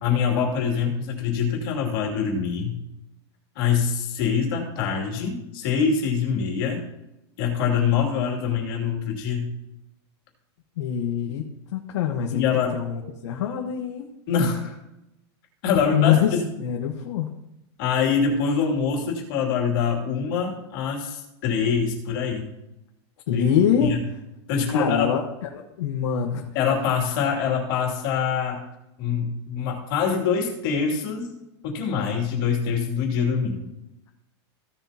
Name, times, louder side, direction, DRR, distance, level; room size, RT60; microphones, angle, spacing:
voice 1, 0.0-2.8 3.5-6.8 7.4-9.5 12.3-12.8 14.3-14.8 15.6-16.4 17.8-22.5 23.3-23.5 23.8-24.0 24.5-25.1 26.5-28.6 29.0-31.3 31.6-33.6, left 6 dB, 50° left, 0 dB, 2.7 m, -24 dB
voice 2, 10.8-11.5 11.7-12.4 12.7-14.1 15.9-17.3 23.3-24.0 24.7-26.5, left 8 dB, 90° left, 1 dB, 1.3 m, -24 dB
16.0 x 7.4 x 2.9 m, 0.89 s
supercardioid pair, 170°, 15 cm